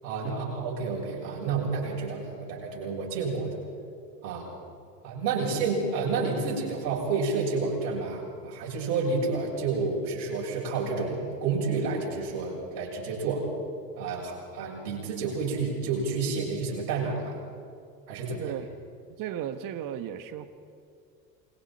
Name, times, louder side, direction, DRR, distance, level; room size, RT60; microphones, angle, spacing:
voice 1, 0.0-3.6 4.2-4.5 5.0-13.5 14.0-17.4 18.1-18.5, right 4 dB, 55° right, -3 dB, 6.9 m, -30 dB
voice 2, 18.4-18.7 19.2-20.5, right 10 dB, 40° right, 11 dB, 1.4 m, -35 dB
28.5 x 21.5 x 4.4 m, 2.4 s
figure-of-eight pair, 75°, 48 cm